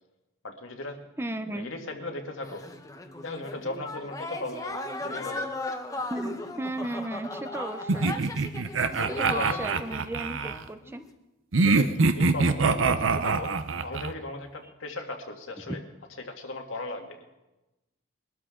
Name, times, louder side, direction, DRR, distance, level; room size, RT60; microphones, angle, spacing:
voice 1, 0.4-1.1 1.5-2.6 3.2-5.5 9.0-9.8 11.6-15.8 16.2-17.2, left 2 dB, 85° left, 3 dB, 1.9 m, -37 dB
voice 2, 1.2-1.7 6.1-8.1 9.1-11.0, right 1 dB, 10° right, 9 dB, 0.6 m, -35 dB
sound 1, 2.4-10.1 10.4-11.1, left 2 dB, 15° left, 0.9 m, -37 dB
sound 2, 7.9-10.6 11.5-14.1, right 4 dB, 80° right, 0.7 m, -24 dB
22.0 x 12.5 x 3.8 m, 1.0 s
head